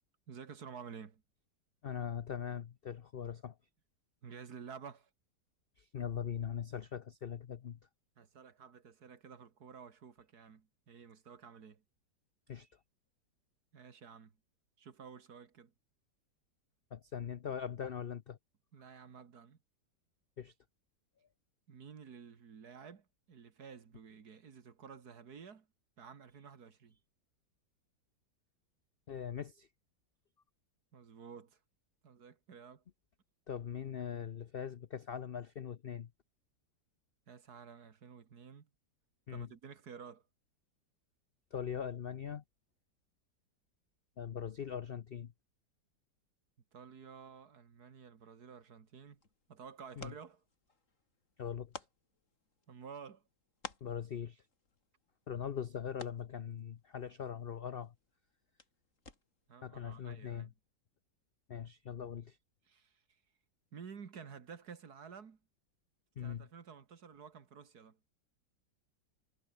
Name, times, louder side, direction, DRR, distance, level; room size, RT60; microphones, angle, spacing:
voice 1, 0.3-1.2 4.2-5.1 8.2-11.8 13.7-14.3 14.8-15.7 18.7-19.6 21.7-25.7 26.0-27.0 30.9-31.6 32.0-32.8 37.3-38.7 39.3-40.2 46.7-49.2 49.5-50.4 52.7-53.2 59.5-60.5 62.7-63.0 63.7-65.4 66.2-68.0, right 6 dB, 65° right, 2.3 m, -52 dB
voice 2, 1.8-3.5 5.9-7.8 12.5-12.7 16.9-18.4 20.4-20.5 29.1-29.7 33.5-36.1 39.3-39.5 41.5-42.4 44.2-45.3 50.0-50.1 51.4-51.8 53.8-54.4 55.3-57.9 59.6-60.5 61.5-62.4 66.2-66.5, left 8 dB, 65° left, 0.5 m, -41 dB
sound 1, 48.8-59.6, left 3 dB, 45° left, 3.3 m, -56 dB
omnidirectional pair, 1.9 m